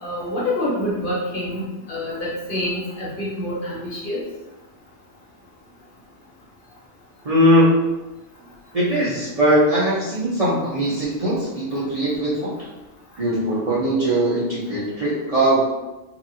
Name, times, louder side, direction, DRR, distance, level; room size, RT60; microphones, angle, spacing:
voice 1, 0.0-4.2, left 1 dB, 50° left, -6 dB, 0.9 m, -27 dB
voice 2, 7.2-7.7 8.7-12.7 13.2-15.6, equal, 40° right, -9 dB, 0.6 m, -20 dB
2.9 x 2.5 x 2.7 m, 1.0 s
omnidirectional pair, 1.2 m